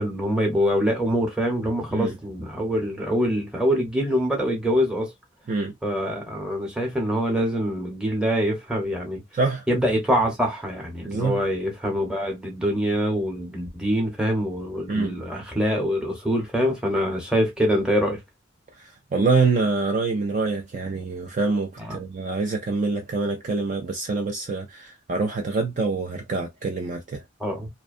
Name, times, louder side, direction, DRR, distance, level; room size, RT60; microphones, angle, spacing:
voice 1, 0.0-5.1 5.8-9.2 9.7-18.2 21.8-22.0 27.4-27.7, equal, 5° right, 0.8 m, -24 dB
voice 2, 9.3-9.6 11.1-11.4 14.9-15.1 19.1-27.2, right 3 dB, 40° right, 0.3 m, -25 dB
2.6 x 2.1 x 2.4 m
head